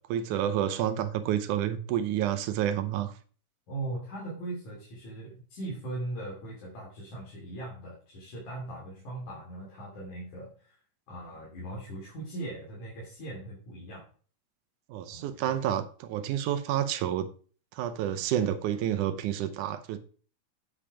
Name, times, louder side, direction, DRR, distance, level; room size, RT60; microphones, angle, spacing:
voice 1, 0.1-3.1 14.9-17.3 17.7-20.0, right 10 dB, 85° right, 2.4 m, -29 dB
voice 2, 3.7-10.8 11.1-14.1 15.1-15.5, right 2 dB, 75° left, 4.5 m, -39 dB
8.9 x 8.8 x 5.0 m
omnidirectional pair, 3.5 m